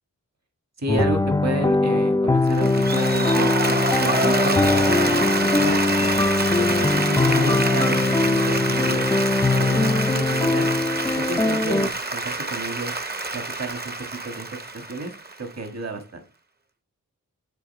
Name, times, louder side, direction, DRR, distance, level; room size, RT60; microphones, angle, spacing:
voice 1, 0.8-9.1 9.5-10.7 11.1-12.9 13.3-13.9 14.2-15.1 15.4-16.2, right 2 dB, 55° right, 5 dB, 1.6 m, -31 dB
sound 1, 0.9-11.9, left 2 dB, 10° left, 0.4 m, -21 dB
Applause, 2.5-15.7, right 2 dB, 30° right, 0.8 m, -26 dB
7.6 x 3.9 x 6.4 m, 0.34 s
wide cardioid pair, 60°, 33 cm